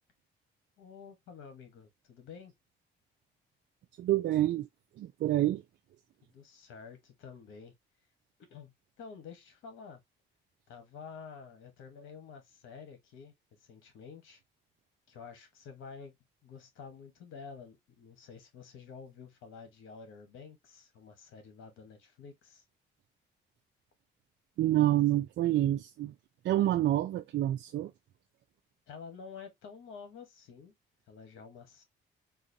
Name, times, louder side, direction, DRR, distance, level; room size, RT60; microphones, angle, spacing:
voice 1, 0.8-2.5 6.3-7.7 8.5-10.0 10.7-13.3 13.6-14.4 15.1-16.2 16.4-22.6 28.9-30.7 31.1-31.8, left 5 dB, 85° left, 1.1 m, -49 dB
voice 2, 4.0-4.7 5.0-5.6 24.6-26.1 26.4-27.9, right 14 dB, 65° right, 0.4 m, -27 dB
3.9 x 2.5 x 2.6 m
cardioid pair, 90°, 20 cm